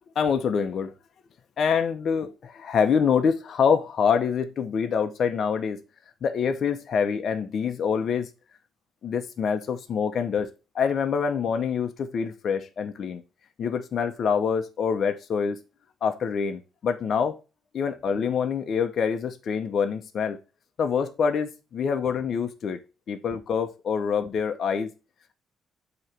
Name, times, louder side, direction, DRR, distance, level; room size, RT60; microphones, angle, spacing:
voice 1, 0.2-0.9 1.6-5.8 6.2-8.3 9.0-10.5 10.7-13.2 13.6-15.6 16.0-17.3 17.7-20.4 20.8-22.8 23.1-24.9, left 6 dB, 60° left, 0.7 m, -25 dB
7.8 x 3.0 x 5.9 m
cardioid pair, 90°, 0 cm